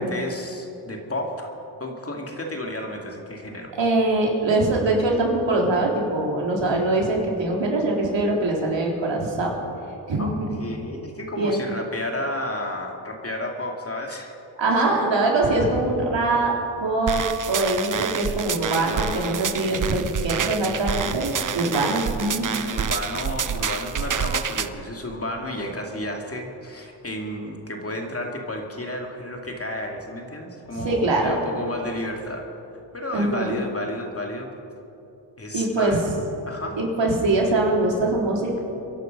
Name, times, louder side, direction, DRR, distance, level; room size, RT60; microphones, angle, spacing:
voice 1, 0.0-1.5 1.8-3.7 10.2-14.4 22.5-32.5 32.9-34.5 35.4-36.0 36.5-36.8, left 1 dB, 25° left, 2 dB, 2.5 m, -32 dB
voice 2, 3.8-9.5 10.1-10.5 11.4-11.6 14.6-16.5 16.8-17.2 17.5-22.5 30.7-31.4 33.1-33.7 35.5-36.0 36.7-38.6, right 2 dB, 60° right, -1 dB, 3.9 m, -23 dB
sound 1, 17.1-24.7, right 7 dB, 40° right, 0.8 m, -28 dB
24.0 x 11.0 x 5.4 m, 2.8 s
supercardioid pair, 55°, 50 cm